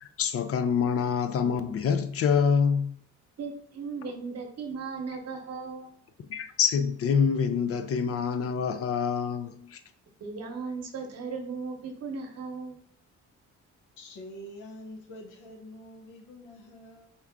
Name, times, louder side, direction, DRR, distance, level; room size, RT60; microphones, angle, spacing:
voice 1, 0.0-2.9 6.3-9.8, left 6 dB, 50° left, 0.4 m, -26 dB
voice 2, 3.4-5.9 10.2-12.8, right 4 dB, 55° right, 0.9 m, -37 dB
voice 3, 14.0-17.1, left 1 dB, 85° left, 0.9 m, -46 dB
4.2 x 2.4 x 3.5 m
cardioid pair, 90°, 30 cm